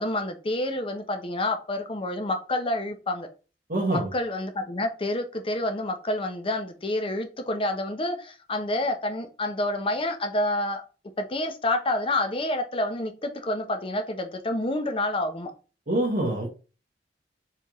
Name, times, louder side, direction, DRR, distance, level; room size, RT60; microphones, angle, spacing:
voice 1, 0.0-3.3 3.9-10.8 11.2-15.5, left 1 dB, 30° left, 6 dB, 0.7 m, -28 dB
voice 2, 3.7-4.1 15.9-16.5, right 1 dB, 50° right, -1 dB, 1.1 m, -25 dB
4.5 x 3.5 x 3.0 m, 0.34 s
head